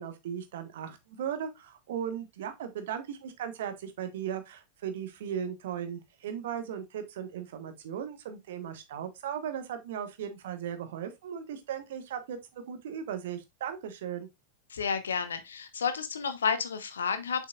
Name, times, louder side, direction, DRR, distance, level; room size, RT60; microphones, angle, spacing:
voice 1, 0.0-14.3, right 8 dB, 55° right, 1.3 m, -37 dB
voice 2, 14.7-17.5, left 6 dB, 70° left, 1.0 m, -31 dB
7.3 x 5.5 x 2.4 m
figure-of-eight pair, 90°, 0 cm